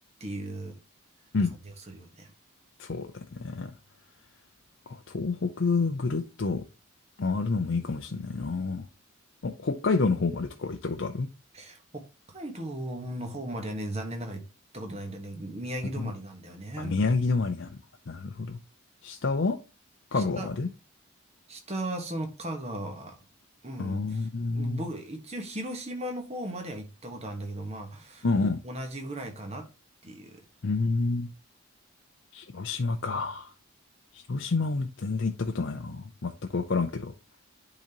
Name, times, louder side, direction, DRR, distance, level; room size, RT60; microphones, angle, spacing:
voice 1, 0.2-0.8 1.8-2.3 11.5-14.4 14.7-17.0 20.1-20.5 21.5-23.2 23.6-24.3 24.5-28.3 28.6-29.7 30.0-30.4, right 1 dB, 30° right, 1.3 m, -37 dB
voice 2, 2.8-3.7 4.9-6.6 7.2-8.8 9.4-11.3 15.8-16.1 16.8-17.7 18.1-18.6 19.0-19.6 20.1-20.7 23.8-24.8 28.2-28.6 30.6-31.3 32.3-33.5 34.1-37.1, left 3 dB, 55° left, 0.5 m, -28 dB
10.0 x 4.0 x 2.9 m
head